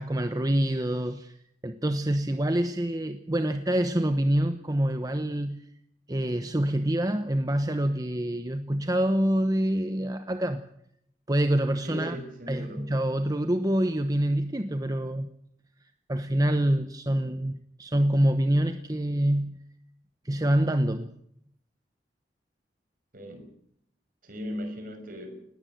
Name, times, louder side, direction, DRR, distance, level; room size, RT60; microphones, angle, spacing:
voice 1, 0.0-1.4 1.6-5.6 6.1-10.6 11.3-12.2 12.5-15.3 16.1-19.6 20.2-21.1, right 1 dB, 20° right, 8 dB, 1.0 m, -26 dB
voice 2, 11.8-12.9 23.1-23.5 24.2-25.5, equal, 50° right, 6 dB, 5.9 m, -38 dB
19.5 x 17.0 x 9.2 m, 0.72 s
head